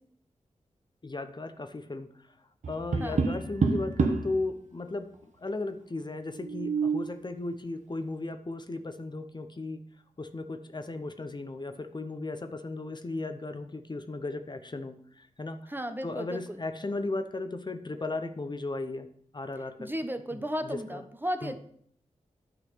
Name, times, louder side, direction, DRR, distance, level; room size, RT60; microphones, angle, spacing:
voice 1, 1.0-2.3 2.7-9.8 10.2-15.7 16.0-19.1 19.3-19.9 20.3-21.0 21.4-21.6, left 2 dB, 35° left, 8 dB, 0.8 m, -36 dB
Tap, 2.6-4.3 6.3-7.1, right 4 dB, 75° right, 1.0 m, -28 dB
voice 2, 15.7-16.6 19.8-21.6, equal, 15° right, 8 dB, 0.9 m, -34 dB
9.9 x 4.0 x 6.6 m, 0.63 s
cardioid pair, 55°, 13 cm